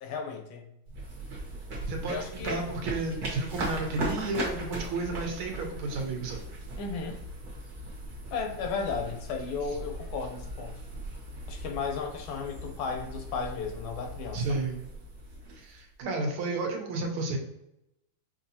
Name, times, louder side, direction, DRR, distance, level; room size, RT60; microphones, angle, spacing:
voice 1, 0.0-0.7 2.1-2.9 6.8-7.2 8.3-10.8 11.5-14.6, left 5 dB, 75° left, 3 dB, 1.5 m, -35 dB
sound 1, 0.9-16.0, right 1 dB, 50° right, 1.5 m, -39 dB
voice 2, 1.9-6.5 14.3-14.8 15.5-17.4, right 3 dB, 75° right, 2 dB, 1.7 m, -32 dB
5.3 x 2.6 x 2.7 m, 0.83 s
omnidirectional pair, 2.4 m